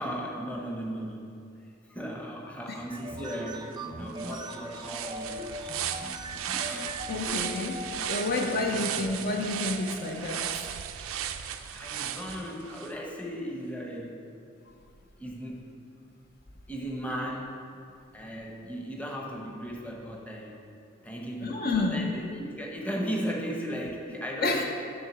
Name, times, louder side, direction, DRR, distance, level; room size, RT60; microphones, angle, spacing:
voice 1, 0.0-1.3 1.9-5.7 6.6-7.1 8.3-9.0 11.7-14.2 15.2-15.7 16.7-17.6 18.1-20.5 21.0-24.6, equal, 5° left, -2 dB, 0.8 m, -36 dB
sound 1, 2.8-11.0, right 1 dB, 20° right, 0.3 m, -41 dB
sound 2, 3.7-3.8 4.1-12.9, right 9 dB, 90° right, 0.4 m, -36 dB
voice 2, 6.5-10.5 21.4-22.1 24.4-24.6, left 3 dB, 45° left, 2 dB, 0.5 m, -30 dB
10.5 x 3.6 x 6.0 m, 2.5 s
head